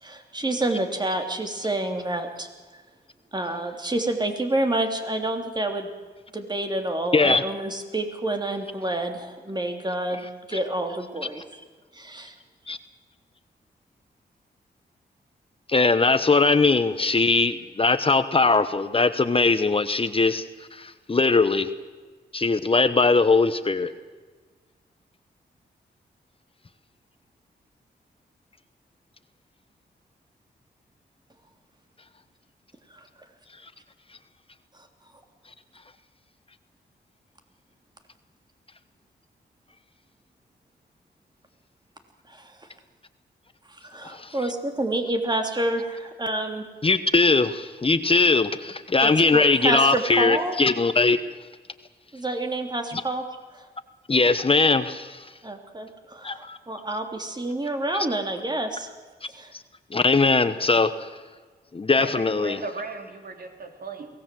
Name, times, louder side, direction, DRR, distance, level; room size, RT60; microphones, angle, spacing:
voice 1, 0.0-2.5 3.3-5.9 6.3-11.5 11.9-12.3 32.9-33.1 42.3-42.5 43.7-46.7 49.0-50.6 52.1-53.2 53.5-53.6 55.4-58.9 59.3-59.5, right 1 dB, 25° right, 5 dB, 3.2 m, -28 dB
voice 2, 15.7-20.4 20.7-21.7 22.3-23.9 44.1-44.3 46.8-51.2 54.1-55.2 56.2-56.6 59.9-60.9 61.7-62.6, left 3 dB, 30° left, 11 dB, 1.1 m, -20 dB
voice 3, 62.0-64.1, right 3 dB, 60° right, 4 dB, 3.6 m, -36 dB
23.0 x 18.0 x 7.8 m, 1.4 s
cardioid pair, 75°, 17 cm